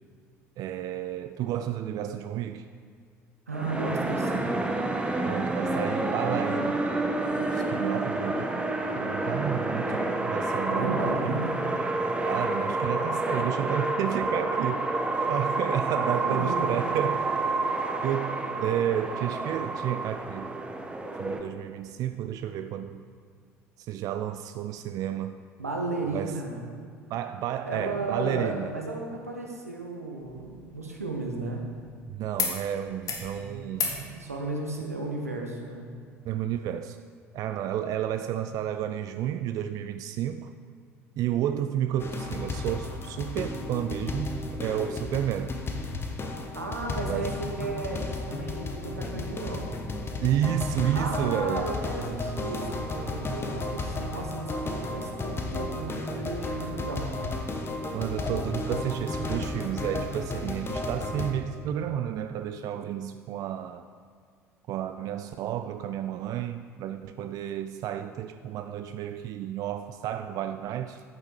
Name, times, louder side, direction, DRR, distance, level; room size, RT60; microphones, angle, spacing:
voice 1, 0.6-2.7 5.2-11.4 12.2-14.9 15.3-17.3 18.0-20.5 21.2-23.0 23.8-25.4 26.1-26.4 27.1-28.7 32.1-34.1 36.2-37.0 37.3-40.5 41.2-45.6 47.0-47.3 50.2-51.7 57.9-63.9 64.7-71.0, right 10 dB, 50° right, 10 dB, 0.4 m, -31 dB
sound 1, 3.5-21.4, right 2 dB, 15° right, 1.2 m, -29 dB
voice 2, 3.5-4.5 10.7-11.7 16.3-16.8 25.6-26.7 27.6-31.6 33.3-35.9 46.5-49.7 50.9-57.1, right 2 dB, 90° right, 1 dB, 1.3 m, -34 dB
sound 2, 30.2-32.0 32.4-32.6 32.9-33.3 33.7-34.0 35.4-35.5, left 6 dB, 50° left, 1.8 m, -34 dB
sound 3, 42.0-61.3, left 2 dB, 30° left, 1.4 m, -33 dB
10.5 x 8.9 x 4.8 m, 2.1 s
figure-of-eight pair, 60°, 8 cm